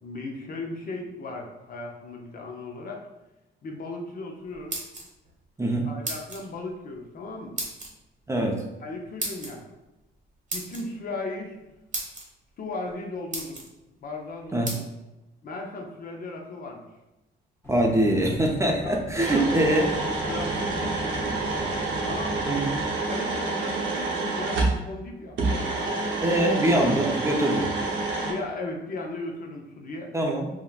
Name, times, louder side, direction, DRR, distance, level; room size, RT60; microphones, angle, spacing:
voice 1, 0.0-3.0 3.6-4.8 5.8-7.6 8.8-9.7 10.5-11.7 12.6-13.6 14.0-14.9 15.4-16.8 18.8-19.0 19.2-19.4 20.3-21.4 22.0-22.5 23.1-26.0 28.2-30.1, left 2 dB, 45° left, 1 dB, 0.6 m, -36 dB
sound 1, 4.5-5.3 6.0-6.4 7.6-7.9 9.2-9.5 10.5-10.8 11.5-11.6 11.9-12.2 12.9-13.0 13.3-13.7 14.6-14.8, right 2 dB, 40° right, 0.9 m, -33 dB
voice 2, 5.6-5.9 8.3-8.6 14.5-14.7 17.7-19.9 22.5-22.7 26.2-27.7 30.1-30.5, right 1 dB, 15° right, 0 dB, 0.4 m, -23 dB
sound 2, 17.6-22.8, left 1 dB, 10° left, 0.8 m, -39 dB
sound 3, 19.2-24.8 25.4-28.3, right 3 dB, 70° right, 0.8 m, -28 dB
3.6 x 2.1 x 2.3 m, 1.0 s
cardioid pair, 90°, 20 cm